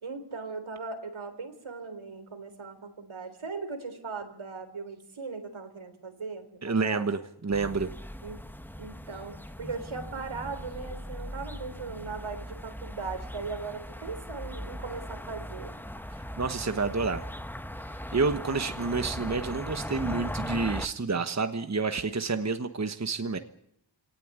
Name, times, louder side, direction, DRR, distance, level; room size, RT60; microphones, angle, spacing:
voice 1, 0.0-7.1 8.2-8.4 8.8-15.7, right 4 dB, 80° right, 8 dB, 3.9 m, -39 dB
voice 2, 6.6-7.9 16.4-17.3 18.1-23.4, right 4 dB, 35° right, 9 dB, 1.3 m, -29 dB
sound 1, 7.5-20.9, equal, 5° left, 1.2 m, -39 dB
25.5 x 18.0 x 9.7 m, 0.77 s
wide cardioid pair, 85°, 47 cm